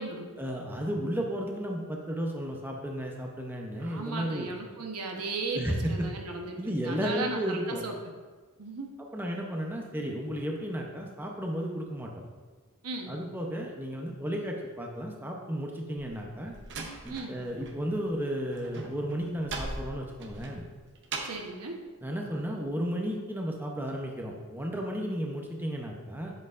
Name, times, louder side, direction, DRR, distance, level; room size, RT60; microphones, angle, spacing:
voice 1, 0.4-4.5 5.5-6.1 6.6-7.8 9.1-12.1 13.1-16.5 17.0-20.6 22.0-26.3, equal, 10° right, 0 dB, 0.6 m, -33 dB
voice 2, 3.8-7.9 8.6-8.9 12.8-13.1 17.1-17.3 21.2-21.8, right 3 dB, 90° right, 2 dB, 1.0 m, -36 dB
Slam, 16.0-17.8 18.0-21.5, right 3 dB, 55° right, 0.8 m, -39 dB
7.8 x 7.7 x 2.5 m, 1.4 s
head